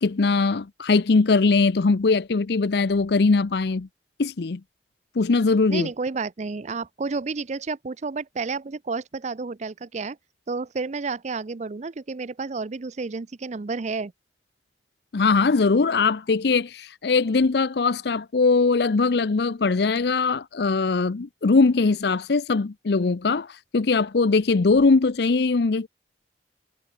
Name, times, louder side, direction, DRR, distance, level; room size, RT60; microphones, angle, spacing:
voice 1, 0.0-3.9 4.2-4.6 5.2-5.9 15.1-25.9, left 4 dB, 65° left, 0.6 m, -21 dB
voice 2, 5.7-10.2 10.5-14.1, right 4 dB, 40° right, 0.5 m, -31 dB
head